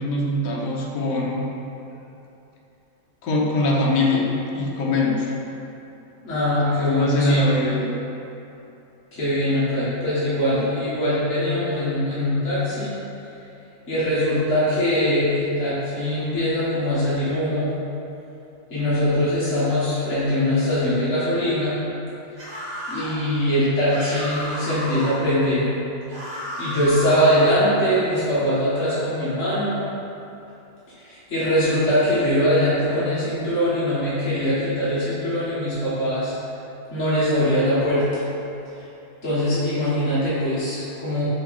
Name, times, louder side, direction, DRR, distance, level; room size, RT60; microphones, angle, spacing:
voice 1, 0.0-1.5 3.2-4.3 4.5-5.3 6.8-7.8, left 1 dB, 70° left, -3 dB, 1.3 m, -22 dB
voice 2, 6.2-7.5 9.1-12.9 13.9-17.7 18.7-21.7 22.9-25.7 26.6-29.8 31.0-36.3 36.9-38.2 39.2-41.2, equal, 50° left, -12 dB, 1.8 m, -22 dB
sound 1, 22.4-23.2 23.9-25.2 26.1-27.6, equal, 40° right, 1.2 m, -32 dB
6.9 x 3.4 x 4.2 m, 2.8 s
omnidirectional pair, 1.6 m